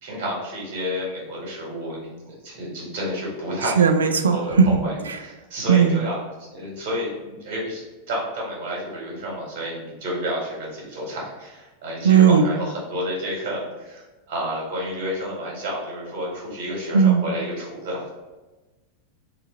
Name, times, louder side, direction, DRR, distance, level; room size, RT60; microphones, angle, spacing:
voice 1, 0.0-3.9 4.2-7.8 8.1-18.1, equal, 45° right, -3 dB, 1.4 m, -30 dB
voice 2, 3.8-4.7 5.7-6.0 12.0-12.5 16.9-17.2, right 7 dB, 70° right, 6 dB, 0.3 m, -16 dB
3.8 x 2.4 x 3.7 m, 1.2 s
figure-of-eight pair, 90°, 0 cm